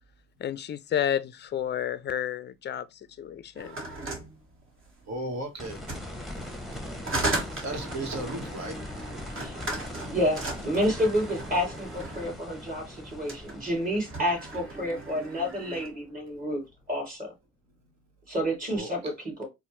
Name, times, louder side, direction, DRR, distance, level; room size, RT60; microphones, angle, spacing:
voice 1, 0.4-3.8, left 10 dB, 35° left, 0.4 m, -31 dB
sound 1, 3.6-5.1 5.8-12.4 13.1-13.6 13.9-15.9, right 2 dB, 45° right, 1.2 m, -36 dB
voice 2, 5.1-5.8 7.6-8.8 18.7-19.1, right 1 dB, 65° right, 1.0 m, -35 dB
sound 2, 5.6-16.5 18.8-18.9, left 1 dB, ahead, 0.9 m, -41 dB
voice 3, 10.1-17.3 18.3-19.5, equal, 30° right, 2.4 m, -29 dB
4.2 x 2.1 x 2.9 m
cardioid pair, 90°, 30 cm